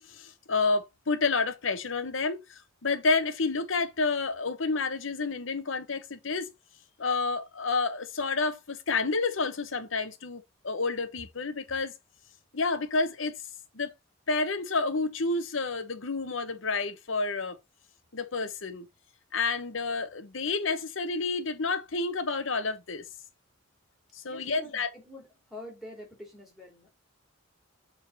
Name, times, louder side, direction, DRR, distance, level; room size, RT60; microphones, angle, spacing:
voice 1, 0.0-6.5 7.0-11.9 12.5-13.3 13.7-13.9 14.3-17.6 18.1-18.9 19.3-23.0 24.1-24.9, left 3 dB, 70° left, 1.1 m, -29 dB
voice 2, 24.2-26.9, left 1 dB, ahead, 3.4 m, -46 dB
6.8 x 3.9 x 4.1 m
head